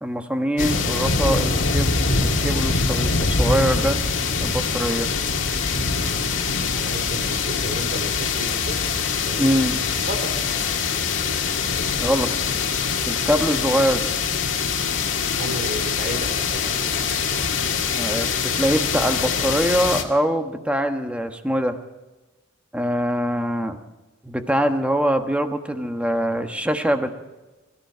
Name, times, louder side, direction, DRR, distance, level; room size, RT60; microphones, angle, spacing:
voice 1, 0.0-1.9 2.2-4.0 4.4-5.1 9.4-9.8 12.0-12.3 13.1-14.1 18.0-21.8 22.7-23.8 24.2-27.1, equal, 5° right, 6 dB, 1.3 m, -23 dB
sound 1, 0.6-20.0, left 5 dB, 80° left, 1.9 m, -23 dB
voice 2, 6.7-8.1 8.4-9.6 10.1-10.4 15.4-16.7, right 1 dB, 50° right, 5 dB, 3.1 m, -33 dB
22.5 x 13.5 x 4.6 m, 1.1 s
head